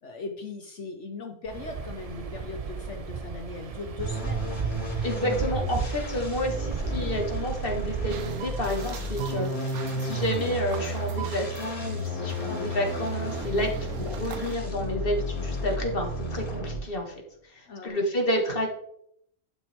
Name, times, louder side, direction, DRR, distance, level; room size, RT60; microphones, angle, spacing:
voice 1, 0.0-4.6 5.2-5.4 6.3-6.4 17.7-18.0, left 4 dB, 55° left, 5 dB, 1.1 m, -39 dB
Waves surf, 1.4-8.8, right 5 dB, 55° right, 0.4 m, -35 dB
sound 1, 4.0-17.0, right 1 dB, 70° left, 3.8 m, -32 dB
voice 2, 5.0-17.2 17.5-18.7, left 1 dB, 40° left, 2 dB, 1.9 m, -30 dB
sound 2, 8.1-14.6, right 8 dB, 75° right, 1.2 m, -41 dB
11.5 x 5.9 x 3.5 m, 0.70 s
omnidirectional pair, 1.6 m